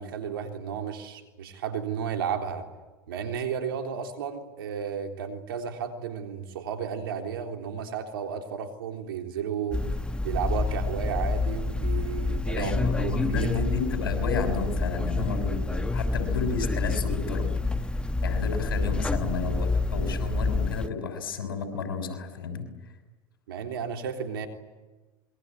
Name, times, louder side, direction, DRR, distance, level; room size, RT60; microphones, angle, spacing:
voice 1, 0.0-2.7 3.1-9.8 10.2-12.7 13.0-13.6 23.5-24.5, right 7 dB, 85° right, 4 dB, 3.6 m, -33 dB
sound 1, 9.7-20.9, left 3 dB, 10° left, 1.3 m, -28 dB
voice 2, 12.5-17.5 17.8-17.9 18.2-22.7, left 5 dB, 90° left, 6 dB, 6.2 m, -32 dB
26.5 x 23.0 x 9.6 m, 1.2 s
hypercardioid pair, 90°, 12 cm